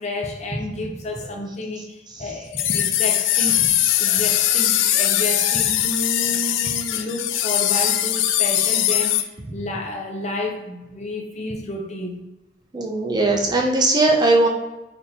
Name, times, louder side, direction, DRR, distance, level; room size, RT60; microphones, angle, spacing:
voice 1, 0.0-3.6 4.0-12.2, left 2 dB, 40° left, 2 dB, 0.7 m, -30 dB
sound 1, 2.5-9.2, left 12 dB, 85° left, 0.3 m, -20 dB
voice 2, 12.7-14.5, right 2 dB, 20° right, 1 dB, 0.5 m, -18 dB
4.2 x 3.4 x 2.8 m, 1.0 s
head